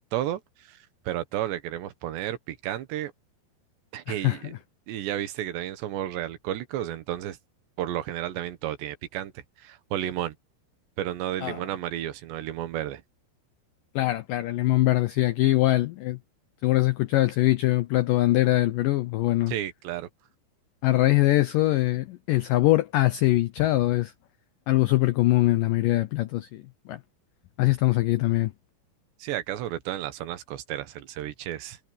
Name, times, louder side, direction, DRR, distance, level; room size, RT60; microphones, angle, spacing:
voice 1, 0.0-3.1 3.9-4.6 4.9-7.4 7.8-9.3 9.6-10.4 11.0-13.0 19.5-20.1 29.2-31.8, right 12 dB, 85° right, 3.6 m, -32 dB
voice 2, 4.1-4.4 11.4-11.6 14.0-16.2 16.6-19.5 20.8-24.1 24.7-27.0 27.6-28.5, left 17 dB, 90° left, 1.9 m, -23 dB
omnidirectional pair, 4.9 m